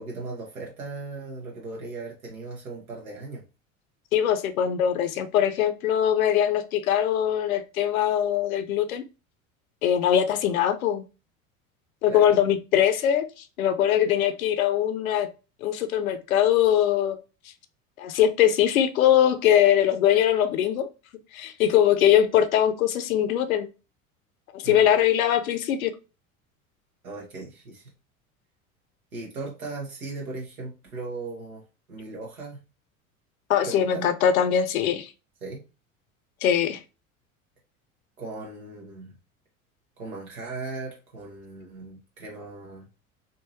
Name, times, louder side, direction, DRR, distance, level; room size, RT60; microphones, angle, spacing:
voice 1, 0.0-3.4 12.1-12.4 24.6-24.8 27.0-27.9 29.1-32.6 33.6-34.1 35.4-35.6 38.2-39.1 40.0-42.9, right 3 dB, 80° right, 1.1 m, -37 dB
voice 2, 4.1-9.0 9.8-11.0 12.0-13.2 13.6-15.3 15.6-17.2 18.0-20.9 21.3-23.7 24.5-25.9 33.5-35.1 36.4-36.8, left 10 dB, 75° left, 0.6 m, -22 dB
3.6 x 2.6 x 2.8 m
figure-of-eight pair, 75°, 42 cm